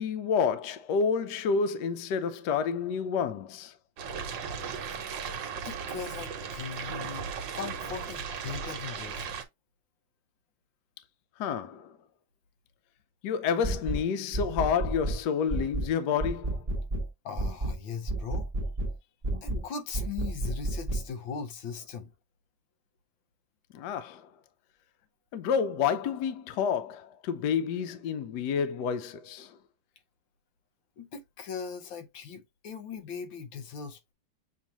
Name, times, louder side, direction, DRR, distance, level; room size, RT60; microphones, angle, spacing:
voice 1, 0.0-3.8 4.2-4.3 11.4-12.0 13.2-16.7 23.7-24.3 25.3-29.6, left 6 dB, 70° left, 1.1 m, -29 dB
sound 1, 4.0-9.4, right 6 dB, 75° right, 1.5 m, -36 dB
voice 2, 5.6-7.3 7.5-9.3 17.2-18.5 19.4-22.1 31.0-34.1, left 6 dB, 85° left, 1.7 m, -39 dB
sound 2, 13.6-14.0 14.3-15.2 15.5-15.9 16.2-17.1 17.4-17.8 18.1-18.9 19.2-19.6 19.9-21.0, right 2 dB, 30° right, 0.8 m, -30 dB
7.1 x 2.4 x 2.9 m
omnidirectional pair, 2.0 m